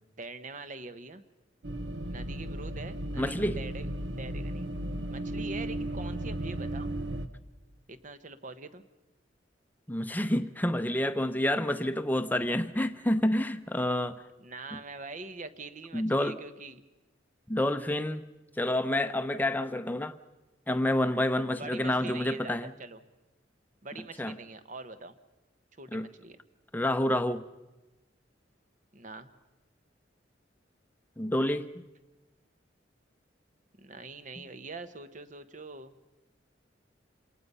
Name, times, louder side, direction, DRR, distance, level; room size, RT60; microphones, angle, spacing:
voice 1, 0.2-1.2 2.1-3.9 4.2-4.7 5.1-6.9 7.9-8.8 14.4-16.8 21.6-23.0 23.8-25.2 25.8-26.4 28.9-29.3 33.8-35.9, right 3 dB, 40° right, 1.0 m, -43 dB
sound 1, 1.6-7.3, right 1 dB, 75° right, 1.0 m, -35 dB
voice 2, 3.2-3.6 9.9-14.2 14.7-14.8 15.9-16.4 17.5-18.2 18.6-20.2 20.7-22.7 24.2-24.3 25.9-26.1 26.7-27.4 31.2-31.8, left 1 dB, 10° left, 0.7 m, -28 dB
27.5 x 19.0 x 5.5 m
head